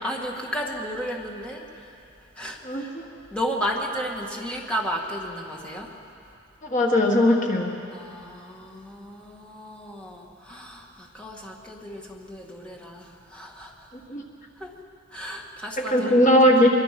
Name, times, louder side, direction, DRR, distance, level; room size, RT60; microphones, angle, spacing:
voice 1, 0.0-2.0 2.4-2.9 3.3-5.9 7.9-13.9 14.6-14.7 15.1-16.7, equal, 5° left, -1 dB, 1.9 m, -33 dB
voice 2, 2.6-3.0 6.6-7.7 14.1-14.2 15.9-16.7, left 1 dB, 35° left, 1 dB, 1.5 m, -19 dB
23.5 x 23.0 x 6.0 m, 2.7 s
head